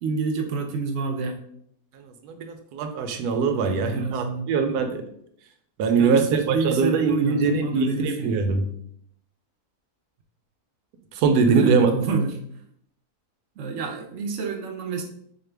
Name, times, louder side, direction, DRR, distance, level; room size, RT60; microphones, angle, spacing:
voice 1, 0.0-1.3 3.6-4.9 6.0-8.4 11.4-12.3 13.6-15.0, right 4 dB, 65° right, 4 dB, 0.7 m, -28 dB
voice 2, 1.9-5.0 5.8-8.7 11.1-11.9, right 5 dB, 85° right, 6 dB, 1.1 m, -22 dB
4.9 x 2.1 x 3.3 m, 0.70 s
omnidirectional pair, 1.6 m